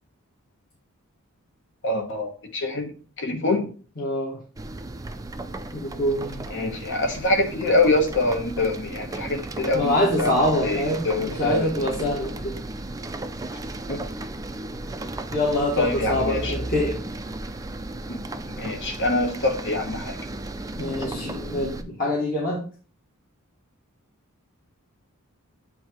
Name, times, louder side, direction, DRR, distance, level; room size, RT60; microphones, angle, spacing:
voice 1, 1.8-2.9 3.2-3.7 6.5-10.3 10.6-11.6 13.9-14.0 15.8-16.5 18.1-18.2 18.6-20.2 21.0-21.3, left 2 dB, 60° left, 4 dB, 1.3 m, -25 dB
voice 2, 4.0-4.4 5.7-6.5 9.7-12.6 15.3-17.0 20.8-22.6, left 1 dB, 40° left, -3 dB, 1.5 m, -25 dB
sound 1, 4.6-21.8, right 2 dB, 15° right, 0.4 m, -35 dB
8.4 x 2.9 x 4.4 m, 0.40 s
head